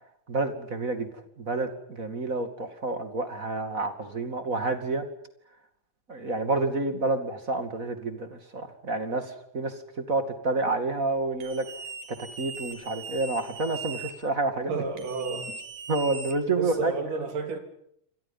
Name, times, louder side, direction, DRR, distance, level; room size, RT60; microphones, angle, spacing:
voice 1, 0.3-1.1 1.4-5.0 6.1-11.6 12.1-14.8 15.9-16.9, right 2 dB, 25° right, 8 dB, 2.3 m, -29 dB
sound 1, 11.4-14.1 15.0-16.8, right 5 dB, 90° right, 5.1 m, -40 dB
voice 2, 14.7-15.5 16.5-17.6, right 4 dB, 75° right, 6 dB, 4.9 m, -31 dB
29.0 x 25.5 x 5.7 m, 0.71 s
omnidirectional pair, 3.8 m